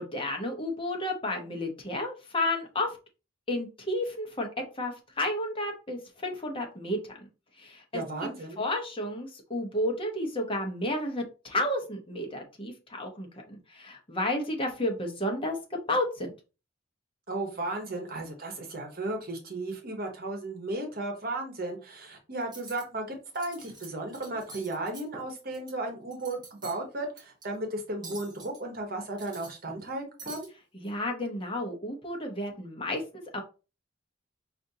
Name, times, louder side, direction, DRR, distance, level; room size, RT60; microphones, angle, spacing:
voice 1, 0.0-3.0 3.5-4.5 4.8-7.3 7.6-8.3 8.6-16.3 30.7-33.4, left 1 dB, 30° left, 2 dB, 0.9 m, -32 dB
voice 2, 7.9-8.6 17.3-30.5, right 2 dB, 50° right, 3 dB, 1.0 m, -35 dB
Cutlery silverware, 22.4-22.8 23.3-23.9 24.1-25.7 26.1-26.8 27.2-27.4 28.0-28.6 29.0-29.9 30.2-30.5, right 3 dB, 20° right, 1.2 m, -46 dB
5.0 x 2.6 x 2.7 m, 0.31 s
head